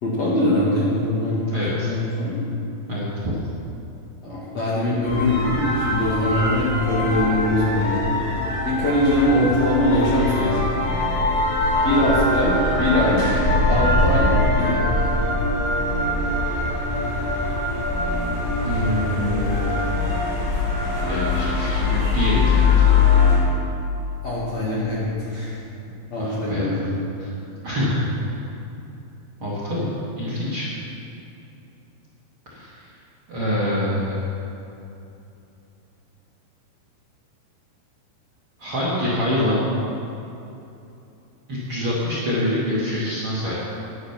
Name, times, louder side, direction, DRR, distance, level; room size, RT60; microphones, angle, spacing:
voice 1, 0.0-1.6 1.8-2.4 4.2-8.1 8.6-10.7 11.8-13.2 13.7-14.3 14.6-14.8 24.2-25.5 26.1-26.9, left 1 dB, 50° left, -7 dB, 2.2 m, -22 dB
voice 2, 1.5-1.9 2.9-3.3 18.6-19.7 21.0-22.9 26.2-26.8 27.2-27.3 27.6-28.0 28.3-28.4 29.4-30.7 32.5-32.8 33.3-34.3 38.6-39.6 41.5-43.5, left 1 dB, 40° right, -7 dB, 2.1 m, -25 dB
sound 1, 5.0-23.4, left 3 dB, 80° left, 5.3 m, -22 dB
12.0 x 10.5 x 5.8 m, 2.8 s
omnidirectional pair, 5.2 m